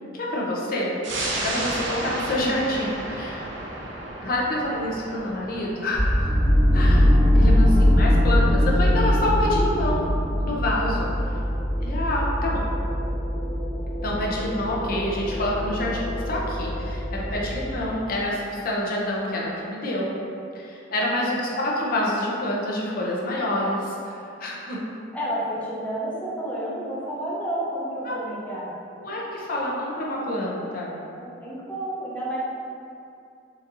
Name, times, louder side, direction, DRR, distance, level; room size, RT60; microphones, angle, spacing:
voice 1, 0.1-1.0 1.4-3.5 4.2-6.3 6.7-7.0 7.4-10.1 10.4-11.1 11.8-12.6 14.0-20.1 20.5-24.8 28.1-28.2 29.0-31.0, left 1 dB, 50° left, -4 dB, 0.6 m, -27 dB
sound 1, 1.0-12.0 12.4-12.5, right 2 dB, 80° right, 0.5 m, -35 dB
sound 2, 5.9-17.9, equal, 45° right, 1.1 m, -22 dB
voice 2, 25.1-28.7 31.2-32.4, right 1 dB, 10° left, -7 dB, 0.6 m, -31 dB
3.9 x 2.7 x 2.6 m, 2.6 s
head